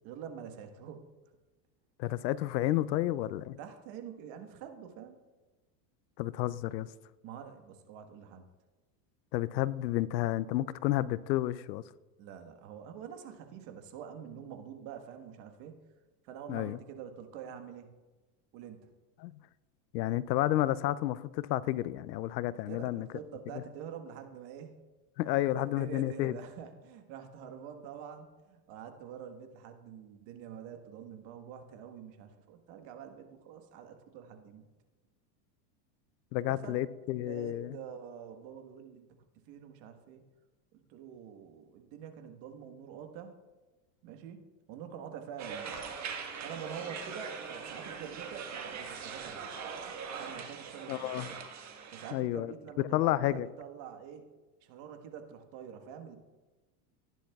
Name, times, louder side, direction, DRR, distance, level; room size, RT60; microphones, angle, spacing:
voice 1, 0.0-1.1 3.6-5.2 7.2-8.5 12.2-15.8 16.2-18.0 18.5-18.9 22.7-24.7 25.5-34.6 36.5-36.8 37.2-39.0 39.5-40.2 40.7-43.4 44.0-45.8 46.4-49.4 50.1-51.3 51.9-54.3 54.6-56.2, right 8 dB, 60° right, 1.5 m, -46 dB
voice 2, 2.0-3.6 6.2-6.9 9.3-11.8 16.5-16.8 19.2-19.3 19.9-23.1 25.2-26.4 36.3-37.8 50.9-51.3 52.1-53.5, left 15 dB, 90° left, 0.6 m, -31 dB
sound 1, 45.4-52.1, right 6 dB, 35° right, 1.5 m, -41 dB
15.5 x 10.0 x 2.3 m
supercardioid pair, 110°, 50 cm